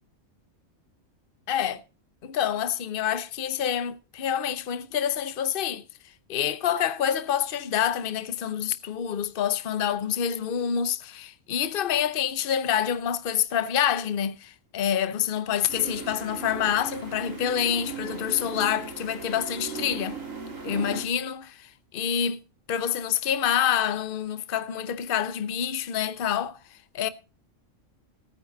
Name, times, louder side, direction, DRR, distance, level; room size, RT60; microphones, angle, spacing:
voice 1, 1.5-1.8 2.2-5.8 6.3-20.2 20.6-22.4 22.7-27.1, left 9 dB, 50° left, 0.9 m, -27 dB
sound 1, 15.7-21.1, right 5 dB, 80° right, 3.3 m, -38 dB
18.0 x 9.2 x 3.9 m
omnidirectional pair, 1.3 m